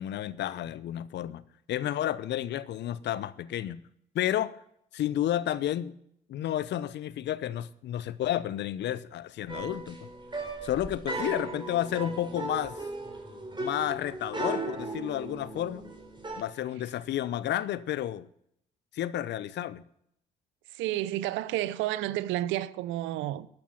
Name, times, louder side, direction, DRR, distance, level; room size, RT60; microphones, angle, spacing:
voice 1, 0.0-1.4 1.7-3.8 4.1-4.5 4.9-6.0 6.3-10.1 10.6-12.8 13.6-15.9 16.4-18.3 18.9-19.8, left 12 dB, 60° left, 0.7 m, -31 dB
sound 1, 9.5-16.4, right 2 dB, 25° right, 4.0 m, -37 dB
voice 2, 11.2-11.6 20.7-23.5, right 14 dB, 70° right, 0.7 m, -31 dB
13.0 x 8.8 x 5.8 m
hypercardioid pair, 50°, 20 cm